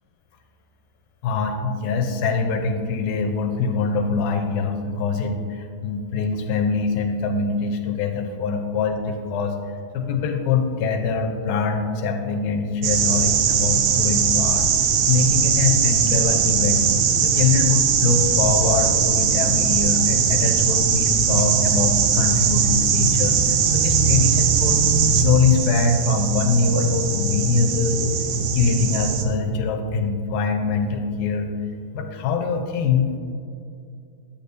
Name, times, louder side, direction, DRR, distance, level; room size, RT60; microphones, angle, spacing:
voice 1, 1.2-9.6 9.9-14.7 15.1-16.9 17.2-24.8 25.1-28.0 28.5-31.5 31.9-33.2, left 5 dB, 80° left, 4 dB, 2.2 m, -23 dB
sound 1, 12.8-29.2, right 6 dB, 80° right, 2.7 m, -20 dB
11.5 x 8.4 x 2.6 m, 2.5 s
omnidirectional pair, 4.5 m